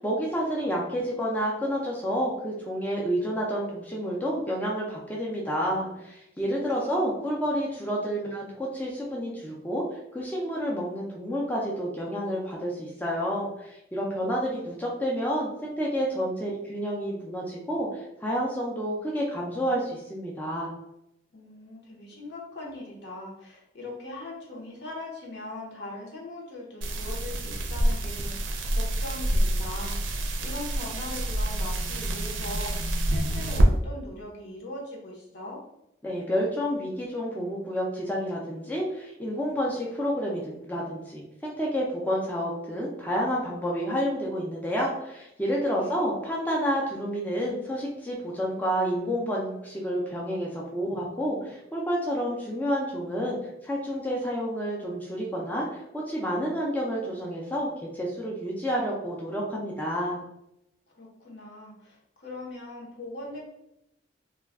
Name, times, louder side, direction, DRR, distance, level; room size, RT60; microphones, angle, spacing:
voice 1, 0.0-9.8 10.1-20.7 36.0-53.4 53.6-60.2, equal, 10° left, -4 dB, 0.4 m, -29 dB
voice 2, 6.5-7.2 21.3-32.7 33.0-35.6 45.7-46.0 61.0-63.4, left 2 dB, 65° left, -3 dB, 0.8 m, -40 dB
sound 1, 26.8-33.7, right 1 dB, 90° right, 0.5 m, -27 dB
2.3 x 2.2 x 3.3 m, 0.83 s
head